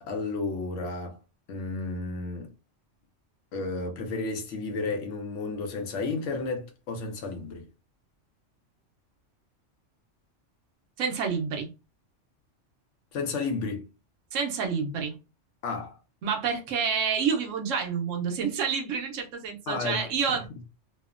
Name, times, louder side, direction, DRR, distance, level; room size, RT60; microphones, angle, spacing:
voice 1, 0.0-1.2 1.5-2.5 3.5-7.6 13.1-13.9 15.6-16.0 19.7-20.6, left 3 dB, 75° left, 1.0 m, -32 dB
voice 2, 11.0-11.7 14.3-15.1 16.2-20.5, right 6 dB, 85° right, 1.0 m, -28 dB
2.9 x 2.0 x 2.4 m
omnidirectional pair, 1.3 m